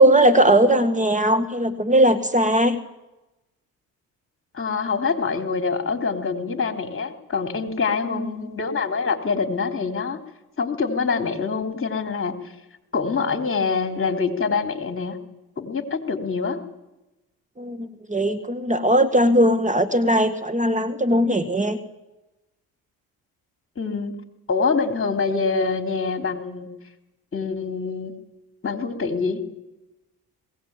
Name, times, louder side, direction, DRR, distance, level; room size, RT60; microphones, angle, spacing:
voice 1, 0.0-2.8 8.1-8.3 17.6-21.8, right 1 dB, 20° right, 10 dB, 1.8 m, -19 dB
voice 2, 4.5-10.2 10.6-12.4 12.9-15.2 15.6-16.6 23.7-24.1 24.5-26.7 27.3-28.1 28.6-29.4, left 4 dB, 35° left, 6 dB, 3.4 m, -25 dB
20.5 x 18.0 x 8.9 m, 0.97 s
supercardioid pair, 70°, 39 cm